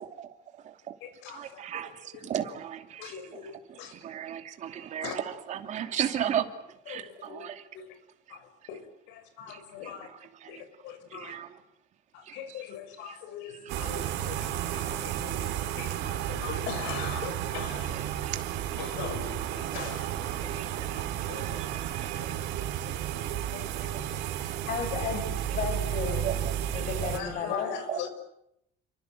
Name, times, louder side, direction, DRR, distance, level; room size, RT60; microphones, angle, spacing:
voice 1, 0.0-0.9 1.3-6.5 6.9-7.6 8.3-8.4 9.5-9.9 10.4-10.6 11.1-11.5 12.3-12.6 13.1-13.2 18.2-18.4 20.4-22.4 23.7-24.5 26.2-27.1 27.9-28.0, right 10 dB, 40° right, 2.8 m, -36 dB
voice 2, 1.0-1.6 2.1-2.3 3.0-3.9 5.0-5.2 6.9-7.5 7.7-7.9 8.3-10.1 10.5-11.3 12.1-18.4 18.8-21.6 22.8-24.2 24.4-24.7 26.9-28.1, left 8 dB, 80° left, 6.4 m, -42 dB
sound 1, 13.7-27.2, right 11 dB, 65° right, 4.0 m, -32 dB
voice 3, 24.6-26.4 26.7-27.7, left 6 dB, 45° left, 6.6 m, -33 dB
30.0 x 25.0 x 7.8 m
cardioid pair, 165°, 19 cm